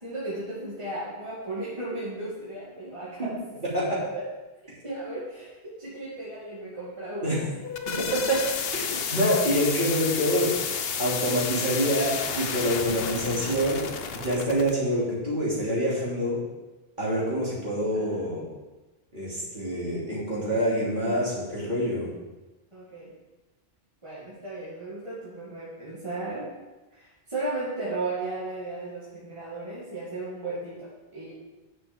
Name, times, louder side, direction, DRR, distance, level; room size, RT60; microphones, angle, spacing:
voice 1, 0.0-3.4 3.9-4.2 4.8-7.5 17.9-18.3 22.7-23.1 24.0-26.5 26.9-31.3, right 2 dB, 30° right, -9 dB, 2.2 m, -35 dB
sound 1, 7.4-14.7, left 7 dB, 70° left, 0.9 m, -31 dB
voice 2, 8.0-8.5 8.7-10.5 11.0-13.8 14.1-16.4 17.0-18.4 19.1-22.1, equal, 50° right, -7 dB, 3.6 m, -26 dB
10.0 x 6.2 x 5.3 m, 1.1 s
omnidirectional pair, 1.1 m